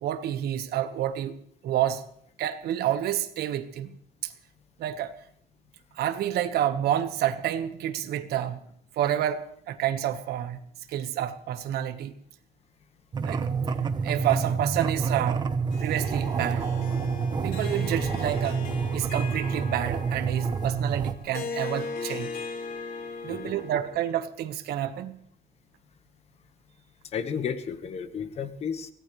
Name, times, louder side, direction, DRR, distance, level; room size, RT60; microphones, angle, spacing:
voice 1, 0.0-1.4 1.6-2.0 2.4-4.0 4.2-4.3 4.8-5.1 5.9-8.6 8.9-10.6 10.9-12.1 13.2-13.5 14.0-15.4 15.8-16.7 17.4-18.6 18.9-22.3 23.2-25.2, right 11 dB, 80° right, 10 dB, 1.3 m, -29 dB
sound 1, 13.1-21.1, right 5 dB, 25° right, 0.8 m, -28 dB
Harp, 15.7-24.1, left 4 dB, 65° left, 3.0 m, -38 dB
voice 2, 27.1-28.9, left 7 dB, 40° left, 10 dB, 1.3 m, -32 dB
24.0 x 17.5 x 3.2 m, 0.63 s
cardioid pair, 175°, 16 cm